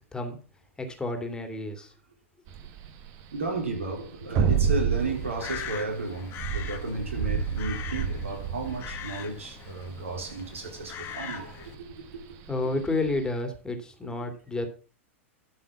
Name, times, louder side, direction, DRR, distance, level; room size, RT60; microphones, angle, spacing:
voice 1, 0.1-0.4 0.8-1.9 12.5-14.7, left 2 dB, 10° left, 2.6 m, -30 dB
sound 1, 2.5-13.3, right 6 dB, 45° right, 1.6 m, -30 dB
voice 2, 3.3-11.8 12.3-12.4, right 3 dB, 80° right, 3.5 m, -33 dB
Crow, 4.9-11.8, left 9 dB, 35° left, 1.7 m, -41 dB
12.5 x 5.9 x 6.0 m
hypercardioid pair, 100°, 7 cm